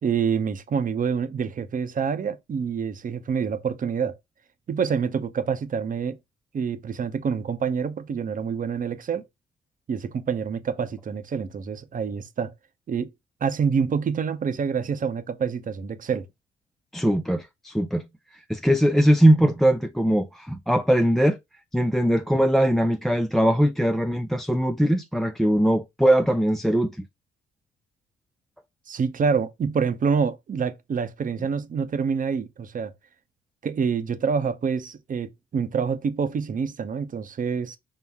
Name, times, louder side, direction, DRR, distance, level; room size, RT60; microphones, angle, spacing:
voice 1, 0.0-4.2 4.7-6.2 6.5-9.2 9.9-12.5 12.9-13.1 13.4-16.3 28.9-32.9 33.6-37.8, right 6 dB, 40° right, 0.7 m, -27 dB
voice 2, 16.9-18.0 18.5-21.4 21.7-26.9, equal, ahead, 0.3 m, -21 dB
5.5 x 2.0 x 3.5 m
cardioid pair, 90°, 20 cm